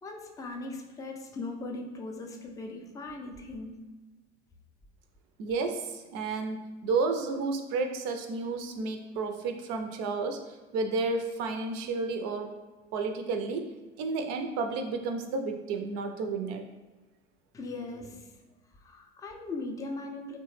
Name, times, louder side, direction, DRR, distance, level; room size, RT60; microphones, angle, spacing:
voice 1, 0.0-3.9 17.5-18.3 18.8-20.4, left 2 dB, 10° left, 2 dB, 0.4 m, -39 dB
voice 2, 5.4-12.5 12.9-13.7 14.0-16.7, right 3 dB, 55° right, 5 dB, 0.5 m, -31 dB
3.0 x 2.1 x 3.2 m, 1.2 s
hypercardioid pair, 70°, 32 cm